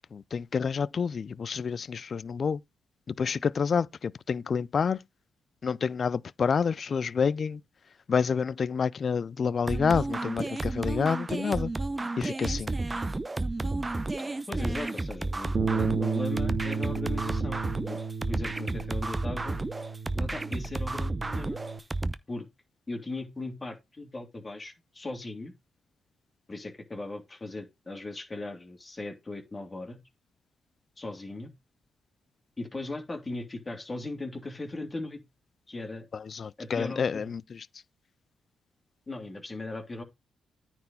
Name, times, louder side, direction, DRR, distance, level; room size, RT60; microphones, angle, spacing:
voice 1, 0.1-2.6 3.1-5.0 5.6-7.6 8.1-11.7 12.2-12.7 36.1-37.7, left 6 dB, 55° left, 0.4 m, -28 dB
sound 1, 9.7-22.1, right 2 dB, 25° right, 0.8 m, -32 dB
voice 2, 14.2-18.0 18.3-19.6 20.1-21.6 22.3-22.5 22.9-25.5 26.5-30.0 31.0-31.5 32.6-35.2 35.7-36.0 36.6-37.2 39.1-40.0, left 2 dB, 25° left, 2.8 m, -38 dB
Bass guitar, 15.5-21.8, right 5 dB, 50° right, 1.3 m, -33 dB
9.4 x 4.4 x 5.4 m
supercardioid pair, 60°, 0 cm